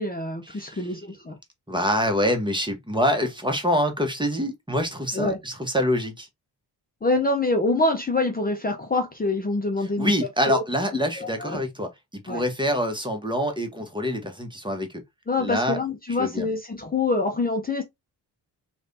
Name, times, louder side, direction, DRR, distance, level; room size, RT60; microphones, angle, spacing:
voice 1, 0.0-1.4 5.1-5.4 7.0-10.1 10.5-10.6 11.2-11.6 12.3-12.4 15.3-17.8, left 2 dB, 20° left, 0.8 m, -25 dB
voice 2, 1.7-6.3 10.0-11.9 12.2-14.9 15.4-15.8 16.2-16.5, equal, 10° right, 1.2 m, -25 dB
3.2 x 2.6 x 2.7 m
supercardioid pair, 45°, 43 cm